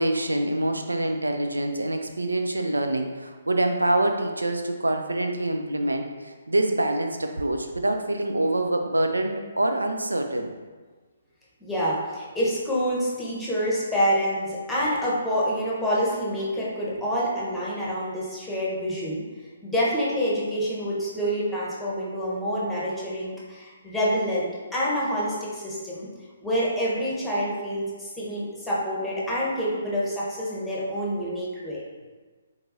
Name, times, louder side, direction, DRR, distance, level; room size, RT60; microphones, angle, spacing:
voice 1, 0.0-10.5, right 1 dB, 85° right, 5 dB, 0.4 m, -25 dB
voice 2, 11.6-19.3 19.6-26.1 26.4-31.8, equal, 5° left, -7 dB, 1.0 m, -27 dB
4.4 x 3.9 x 2.6 m, 1.4 s
figure-of-eight pair, 135°, 0 cm